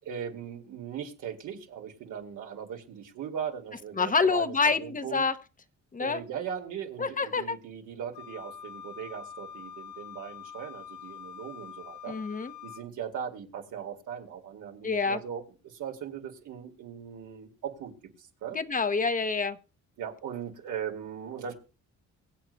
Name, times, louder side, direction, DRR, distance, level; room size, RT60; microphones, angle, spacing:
voice 1, 0.0-5.3 6.0-12.2 12.6-17.9 18.4-18.6 20.0-21.5, right 8 dB, 80° right, 2 dB, 2.3 m, -39 dB
voice 2, 4.0-5.3 5.9-6.2 7.0-7.6 12.1-12.5 14.8-15.2 18.5-19.6, left 4 dB, 25° left, 11 dB, 0.8 m, -27 dB
Wind instrument woodwind instrument, 8.1-12.9, left 8 dB, 70° left, 1.3 m, -45 dB
23.5 x 8.0 x 2.2 m, 0.34 s
cardioid pair, 90°, 30 cm